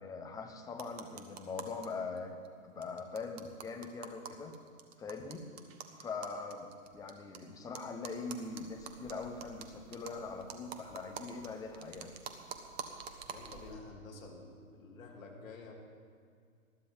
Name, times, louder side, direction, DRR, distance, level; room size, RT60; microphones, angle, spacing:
voice 1, 0.0-2.4 2.6-4.5 5.0-5.5 6.0-12.1, left 4 dB, 10° left, 4 dB, 0.9 m, -42 dB
sound 1, 0.7-1.9 2.2-2.3 2.5-2.6 2.8-7.4 7.7-13.7, right 7 dB, 45° right, 1.4 m, -47 dB
voice 2, 13.3-15.7, left 3 dB, 70° left, 0 dB, 3.3 m, -50 dB
20.5 x 13.5 x 3.7 m, 2.2 s
hypercardioid pair, 130°, 42 cm